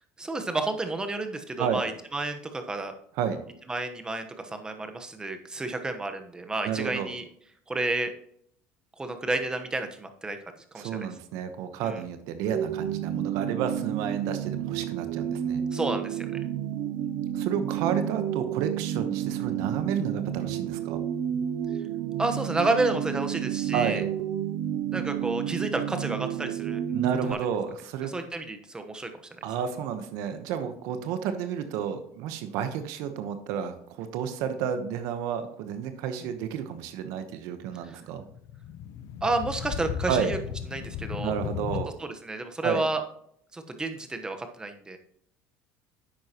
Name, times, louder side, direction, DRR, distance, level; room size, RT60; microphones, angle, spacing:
voice 1, 0.2-2.9 3.7-7.2 7.7-8.1 9.0-10.4 10.7-11.1 11.8-12.0 15.7-16.3 22.2-24.0 24.9-27.0 28.0-29.1 37.8-38.0 39.2-40.4 40.7-41.3 42.0-43.0 43.5-45.0, right 2 dB, 15° right, 7 dB, 1.1 m, -30 dB
voice 2, 6.6-7.1 10.8-15.6 17.3-21.0 23.7-24.1 26.9-28.1 29.4-38.2 40.1-40.3 41.2-41.9 42.6-42.8, right 8 dB, 70° right, 8 dB, 1.0 m, -31 dB
sound 1, 12.5-27.3, right 10 dB, 55° right, 0.5 m, -31 dB
sound 2, 38.2-41.8, left 9 dB, 60° left, 0.8 m, -35 dB
10.0 x 7.8 x 3.0 m, 0.68 s
cardioid pair, 120°, 6 cm